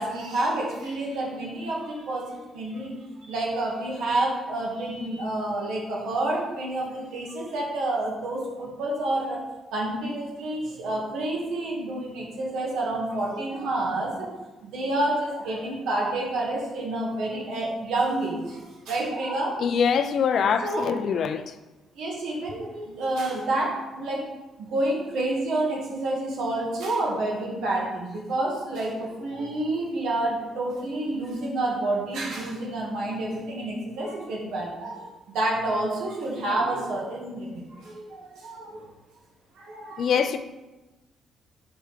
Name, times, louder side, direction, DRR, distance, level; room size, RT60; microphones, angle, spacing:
voice 1, 0.0-9.4 9.7-14.3 14.6-19.6 20.6-21.2 22.0-24.3 24.6-38.8 39.6-40.1, right 2 dB, 80° right, -3 dB, 1.8 m, -29 dB
voice 2, 19.6-21.5 40.0-40.4, left 6 dB, 65° left, 9 dB, 0.5 m, -24 dB
4.9 x 4.3 x 5.0 m, 1.1 s
cardioid pair, 90°, 0 cm